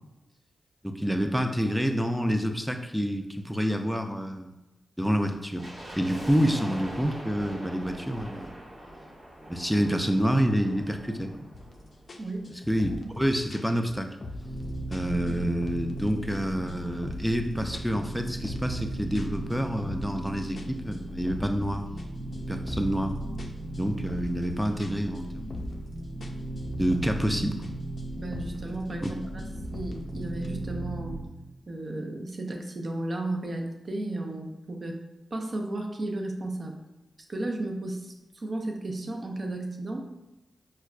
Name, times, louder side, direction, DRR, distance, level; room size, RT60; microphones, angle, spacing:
voice 1, 0.8-4.6 5.0-5.7 5.9-8.5 9.5-11.3 12.7-14.2 14.9-21.9 22.3-23.2 23.7-25.7 26.7-27.6 29.0-29.1, equal, ahead, 5 dB, 0.4 m, -28 dB
sound 1, 5.6-12.8 13.1-13.2 13.9-15.7 15.9-16.0 16.3-16.6 17.0-17.1, right 1 dB, 70° right, 1.3 m, -43 dB
sound 2, 11.5-11.7 12.1-14.6 14.9-16.4 16.7-17.4 17.7-20.2 20.6-23.0 23.4-25.9 26.2-27.7 28.0-28.7 29.0-30.5, left 2 dB, 60° left, 0.4 m, -43 dB
voice 2, 12.2-12.6 28.2-29.4 29.7-31.2 31.7-35.0 35.3-36.8 37.3-40.1, right 2 dB, 50° right, 2 dB, 0.5 m, -34 dB
sound 3, 14.3-31.3, right 1 dB, 15° right, 0.8 m, -37 dB
4.6 x 2.2 x 2.4 m, 1.0 s
cardioid pair, 45°, 0 cm